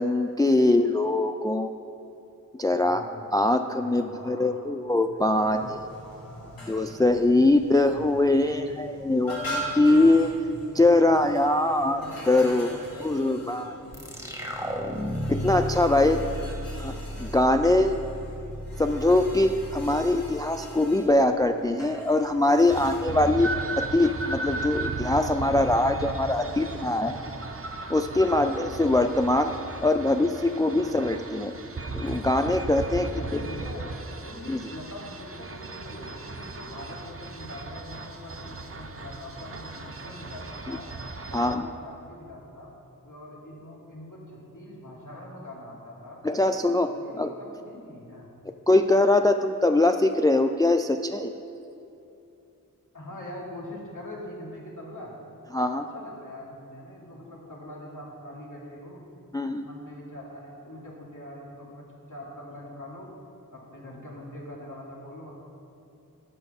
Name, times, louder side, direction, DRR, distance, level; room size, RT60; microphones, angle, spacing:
voice 1, 0.0-1.7 2.5-3.0 3.3-5.8 6.7-10.3 10.7-12.0 12.3-12.7 13.0-13.7 15.3-16.2 16.8-18.0 18.8-27.1 27.9-29.5 29.8-31.5 31.9-33.2 34.5-34.6 40.7-40.8 41.3-41.7 46.2-47.3 48.7-51.3 55.5-55.8 59.3-59.7, left 2 dB, 10° left, 7 dB, 0.3 m, -22 dB
voice 2, 2.8-3.3 3.8-7.0 7.9-10.0 10.3-11.3 11.8-12.8 13.0-15.1 15.9-16.6 16.9-17.0 23.0-23.4 26.3-27.4 28.3-28.5 30.8-31.0 32.9-40.8 41.3-42.7 43.0-46.2 46.8-48.3 52.9-55.1 55.7-59.1 59.6-63.1 63.5-65.3, left 1 dB, 60° left, -4 dB, 2.3 m, -43 dB
sound 1, 5.1-23.0, equal, 85° left, 2.4 m, -42 dB
sound 2, 13.9-21.2, equal, 10° right, 1.2 m, -35 dB
sound 3, 22.7-41.6, right 3 dB, 40° right, 0.7 m, -36 dB
11.5 x 6.4 x 5.5 m, 2.8 s
wide cardioid pair, 60°, 34 cm